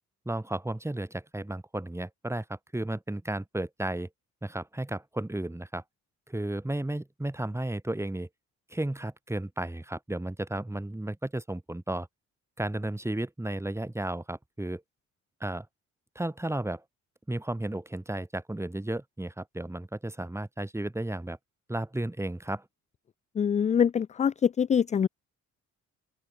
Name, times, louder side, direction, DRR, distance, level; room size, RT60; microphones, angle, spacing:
voice 1, 0.3-4.1 4.4-5.8 6.3-8.3 8.7-12.1 12.6-14.8 15.4-15.7 16.1-16.8 17.3-21.4 21.7-22.6, right 1 dB, 10° right, 4.5 m, -33 dB
voice 2, 23.4-25.1, left 7 dB, 25° left, 0.3 m, -24 dB
open air
cardioid pair, 90°, 30 cm